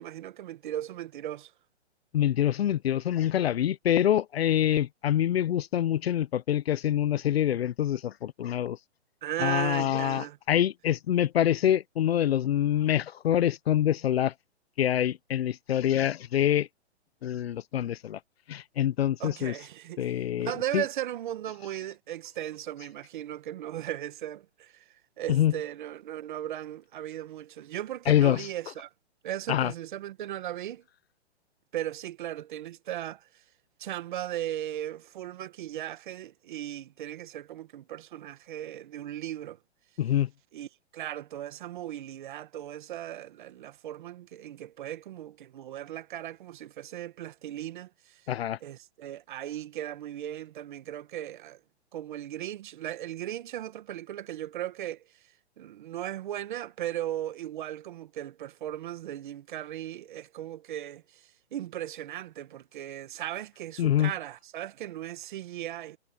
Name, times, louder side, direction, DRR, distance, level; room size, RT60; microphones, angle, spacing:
voice 1, 0.0-1.5 9.2-10.4 19.2-24.9 25.2-28.9 29.2-30.8 31.7-33.2 33.8-39.6 40.5-40.7 40.9-48.2 48.6-51.6 51.9-55.0 55.6-66.0, right 12 dB, 45° right, 1.8 m, -37 dB
voice 2, 2.1-8.8 9.4-14.3 14.8-16.7 17.2-18.2 18.5-19.5 20.0-20.8 25.3-25.5 28.1-28.5 29.5-29.7 40.0-40.3 48.3-48.6 63.8-64.1, left 11 dB, 60° left, 0.7 m, -25 dB
hypercardioid pair, 160°, 35 cm